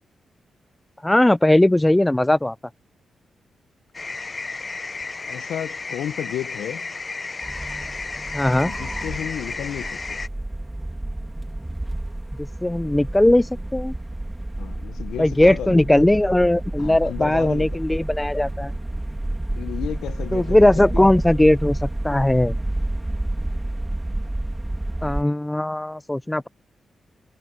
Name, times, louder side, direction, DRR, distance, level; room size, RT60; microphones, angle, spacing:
voice 1, 1.0-2.5 8.3-8.7 12.4-13.9 15.2-18.7 20.3-22.6 25.0-26.5, left 1 dB, 15° left, 0.4 m, -19 dB
sound 1, 3.9-10.3, left 3 dB, 40° left, 0.8 m, -33 dB
voice 2, 5.3-6.9 8.6-10.2 14.6-15.9 16.8-17.8 19.6-21.0, left 11 dB, 90° left, 0.7 m, -32 dB
sound 2, 7.4-25.2, right 1 dB, 15° right, 2.9 m, -30 dB
cardioid pair, 60°, 0 cm